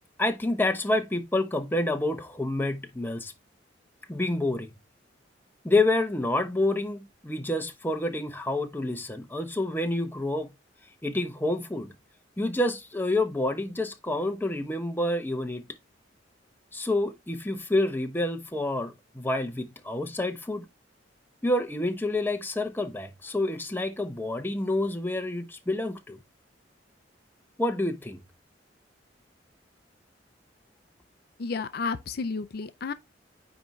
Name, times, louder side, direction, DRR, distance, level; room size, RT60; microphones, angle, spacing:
voice 1, 0.2-3.3 4.1-4.7 5.6-10.5 11.0-11.9 12.4-15.6 16.7-20.7 21.4-26.2 27.6-28.2, left 2 dB, 10° left, 0.8 m, -28 dB
voice 2, 31.4-32.9, left 4 dB, 55° left, 0.5 m, -31 dB
9.5 x 3.5 x 3.1 m
head